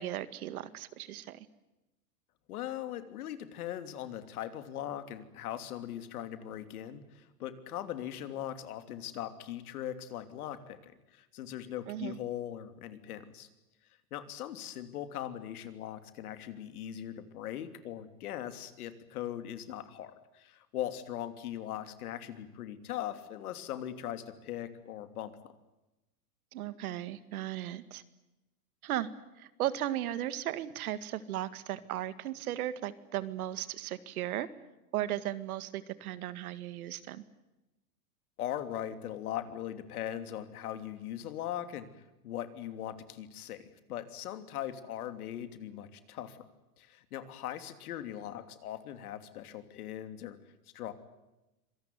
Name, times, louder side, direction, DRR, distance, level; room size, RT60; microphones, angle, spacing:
voice 1, 0.0-1.5 11.9-12.2 26.5-28.0 28.8-29.1 29.4-34.5 34.9-37.2, right 13 dB, 70° right, 14 dB, 2.0 m, -36 dB
voice 2, 2.5-13.5 14.1-25.5 38.4-46.4 46.8-50.4 50.7-50.9, left 11 dB, 70° left, 10 dB, 3.1 m, -40 dB
26.0 x 18.5 x 9.5 m, 1.0 s
supercardioid pair, 140°, 46 cm